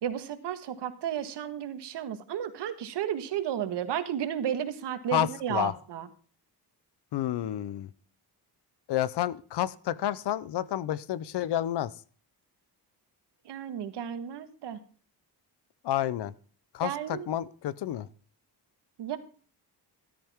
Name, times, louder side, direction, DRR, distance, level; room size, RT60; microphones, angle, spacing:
voice 1, 0.0-6.1 13.5-14.8 16.8-17.3 19.0-19.2, right 10 dB, 85° right, 10 dB, 1.7 m, -33 dB
voice 2, 5.1-5.7 7.1-7.9 8.9-11.9 15.8-16.3 16.7-18.1, left 12 dB, 80° left, 19 dB, 0.9 m, -30 dB
13.5 x 13.0 x 3.6 m, 0.41 s
wide cardioid pair, 160°, 40 cm